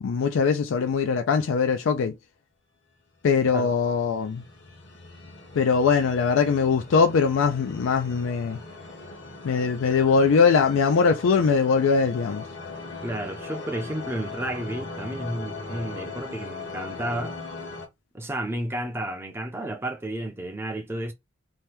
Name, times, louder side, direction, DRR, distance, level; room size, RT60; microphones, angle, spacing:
voice 1, 0.0-2.2 3.2-4.5 5.5-8.6 9.4-12.5, left 5 dB, 80° left, 0.4 m, -21 dB
sound 1, 3.5-17.9, left 3 dB, 55° left, 0.9 m, -39 dB
voice 2, 13.0-17.4 18.1-21.1, right 1 dB, 10° right, 0.5 m, -32 dB
2.9 x 2.2 x 3.2 m
head